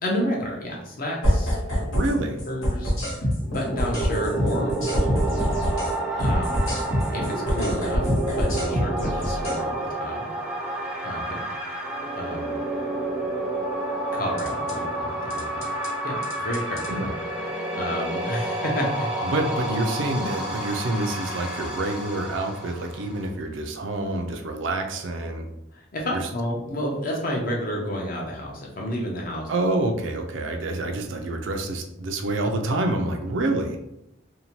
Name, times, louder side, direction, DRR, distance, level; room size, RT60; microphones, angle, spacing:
voice 1, 0.0-1.6 2.4-3.2 3.4-5.5 5.8-6.7 7.1-10.3 11.0-11.4 12.1-12.6 14.1-16.9 17.7-19.1 25.7-29.5, equal, 45° left, -1 dB, 0.6 m, -30 dB
sound 1, 1.2-2.1 2.4-5.9 6.2-9.6 14.4-14.7 15.3-15.9 16.2-16.9, equal, 80° left, 1.1 m, -25 dB
voice 2, 1.7-2.4 16.9-17.1 19.2-25.5 26.1-26.3 29.5-33.8, right 2 dB, 60° right, 4 dB, 0.4 m, -27 dB
sound 2, 3.4-23.3, right 1 dB, 5° right, 0.5 m, -30 dB
2.7 x 2.1 x 2.9 m, 0.83 s
head